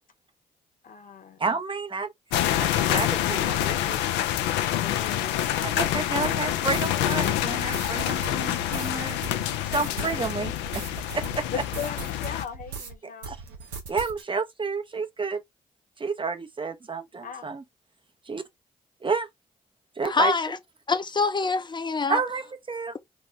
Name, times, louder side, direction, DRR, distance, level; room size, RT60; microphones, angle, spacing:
voice 1, 0.8-1.4 4.8-5.5 9.9-10.2 11.5-13.3 17.2-17.5, left 7 dB, 50° left, 1.0 m, -38 dB
voice 2, 1.4-2.1 2.6-4.0 5.6-9.2 9.6-10.8 11.1-11.4 13.3-13.4 13.9-15.4 16.0-17.6 18.3-18.4 19.0-19.3 20.0-20.3 22.1-22.9, right 4 dB, 30° right, 0.7 m, -30 dB
sound 1, 2.3-12.5, left 12 dB, 80° left, 0.4 m, -27 dB
sound 2, 6.2-13.0 13.2-14.2, right 4 dB, 90° right, 0.6 m, -39 dB
voice 3, 20.0-20.6 20.9-22.2, left 4 dB, 25° left, 0.6 m, -25 dB
3.0 x 2.1 x 3.3 m
hypercardioid pair, 40°, 18 cm